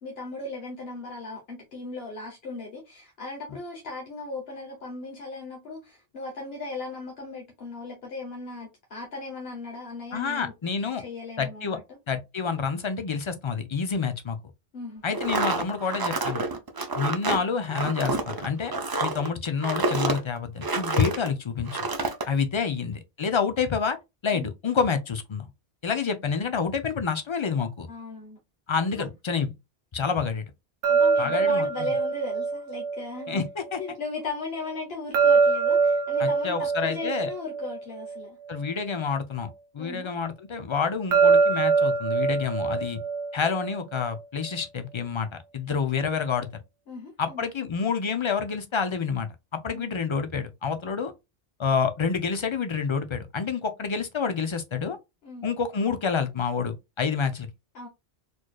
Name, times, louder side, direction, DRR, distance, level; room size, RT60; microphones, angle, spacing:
voice 1, 0.0-10.5 11.0-12.0 14.7-15.5 24.3-24.5 27.9-28.4 28.9-29.1 30.9-33.4 33.8-38.4 39.8-40.1 45.9-46.0 46.9-47.4 49.7-49.9 55.2-55.5 57.7-57.9, left 3 dB, 75° left, 1.2 m, -37 dB
voice 2, 10.1-11.0 11.4-11.8 12.1-14.4 15.0-16.4 16.9-18.7 19.0-21.9 22.2-24.0 24.2-25.5 25.8-27.9 28.7-29.5 29.9-30.4 31.2-31.7 33.3-33.8 36.2-37.3 38.5-43.0 43.3-46.5 47.2-51.1 51.6-55.0 55.4-57.5, left 5 dB, 40° left, 0.4 m, -28 dB
sound 1, 15.1-21.3 21.7-22.3, right 3 dB, 35° right, 0.4 m, -28 dB
sound 2, 30.8-33.9 35.1-38.7 41.1-44.2, right 5 dB, 85° right, 0.8 m, -24 dB
4.3 x 3.1 x 2.3 m
omnidirectional pair, 1.0 m